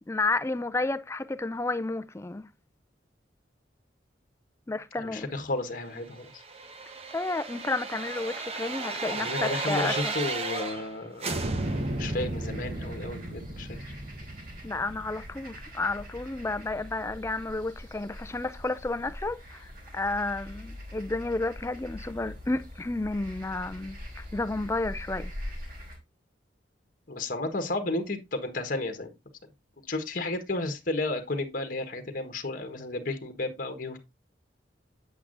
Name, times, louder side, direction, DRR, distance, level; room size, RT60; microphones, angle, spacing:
voice 1, 0.1-2.5 4.7-5.3 7.1-10.1 14.6-25.3, left 2 dB, 15° left, 0.4 m, -31 dB
voice 2, 4.9-6.4 9.2-11.4 12.0-13.8 27.1-29.1 29.9-34.0, left 2 dB, 45° left, 1.4 m, -32 dB
sound 1, 6.2-10.9 11.2-16.1 16.4-16.5, right 2 dB, 35° right, 1.0 m, -34 dB
sound 2, 11.6-26.0, left 1 dB, 50° right, 3.2 m, -43 dB
8.4 x 8.2 x 2.6 m
head